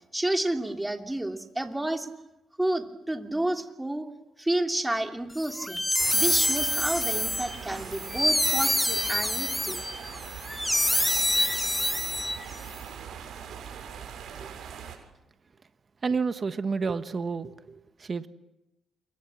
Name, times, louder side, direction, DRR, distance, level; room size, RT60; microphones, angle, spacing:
voice 1, 0.1-2.1 2.6-4.1 4.4-5.8 6.1-9.8, right 1 dB, 10° right, 4 dB, 3.0 m, -30 dB
sound 1, 5.4-12.7, left 1 dB, 5° left, 0.9 m, -26 dB
sound 2, 6.0-15.0, right 7 dB, 70° right, 7.0 m, -41 dB
voice 2, 16.0-18.3, right 4 dB, 35° right, 10 dB, 1.3 m, -30 dB
28.0 x 23.5 x 7.5 m, 0.93 s
cardioid pair, 90°, 0 cm